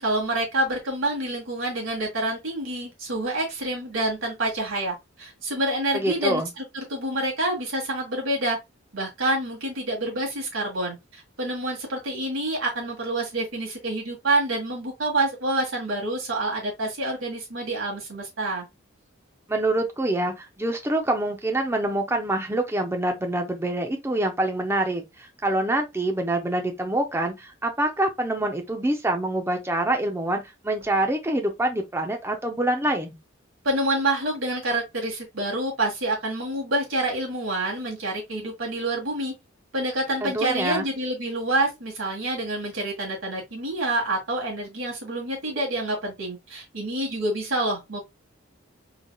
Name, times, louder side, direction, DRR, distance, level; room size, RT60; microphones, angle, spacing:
voice 1, 0.0-8.6 8.9-18.7 33.6-39.3 39.7-48.0, right 1 dB, 75° right, 1.9 m, -27 dB
voice 2, 5.9-6.5 19.5-33.2 40.2-40.9, right 1 dB, 10° right, 0.7 m, -26 dB
3.9 x 3.4 x 2.3 m
head